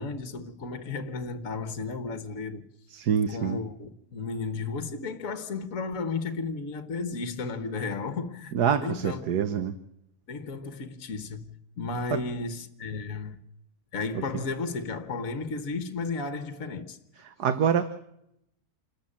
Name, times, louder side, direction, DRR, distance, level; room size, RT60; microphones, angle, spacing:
voice 1, 0.0-2.7 3.3-9.2 10.3-13.4 13.9-17.0, left 4 dB, 60° left, 1.7 m, -34 dB
voice 2, 2.9-3.6 8.5-9.7 12.1-12.2 17.2-17.8, right 8 dB, 80° right, 1.6 m, -26 dB
28.0 x 13.5 x 8.8 m
omnidirectional pair, 1.7 m